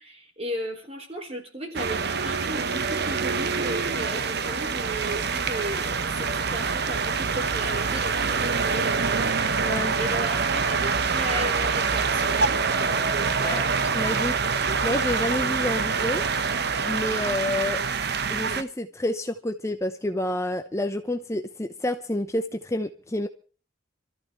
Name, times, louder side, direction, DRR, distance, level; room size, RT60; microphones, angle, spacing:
voice 1, 0.0-12.6 13.1-13.7, right 1 dB, 30° right, 3 dB, 4.0 m, -36 dB
sound 1, 1.7-18.6, right 5 dB, 60° right, 1.0 m, -25 dB
voice 2, 9.6-10.0 13.4-13.7 13.9-14.4 14.8-16.2 16.9-17.8 18.3-23.3, left 1 dB, 15° left, 6 dB, 0.8 m, -29 dB
26.5 x 14.0 x 3.1 m, 0.38 s
head